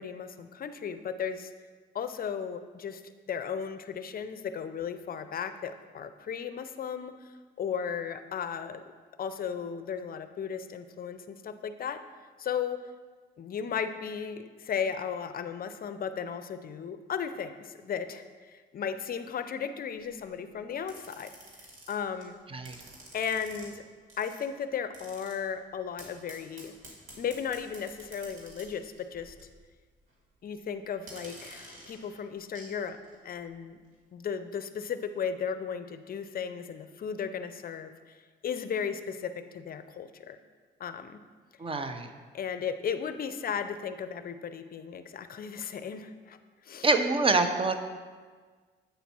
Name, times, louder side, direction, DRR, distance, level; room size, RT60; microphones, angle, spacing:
voice 1, 0.0-1.5 1.9-3.0 3.3-7.1 7.6-8.8 9.2-12.0 12.4-12.8 13.4-21.3 21.9-22.4 23.1-23.8 24.2-26.7 27.1-29.3 30.4-33.0 33.2-33.8 34.1-38.2 38.4-40.4 40.8-41.2 42.3-46.4 46.6-46.9, left 7 dB, 45° left, 10 dB, 0.5 m, -35 dB
sound 1, 20.0-20.2 20.9-22.2 22.7-23.7 24.1-24.5 24.9-25.4 26.0-29.6 29.9-30.1 31.0-32.7 33.0-33.1, right 1 dB, 80° right, 2.0 m, -50 dB
voice 2, 41.6-42.1 46.8-47.8, right 3 dB, 25° right, 8 dB, 0.7 m, -25 dB
8.0 x 4.1 x 6.0 m, 1.5 s
cardioid pair, 90°, 20 cm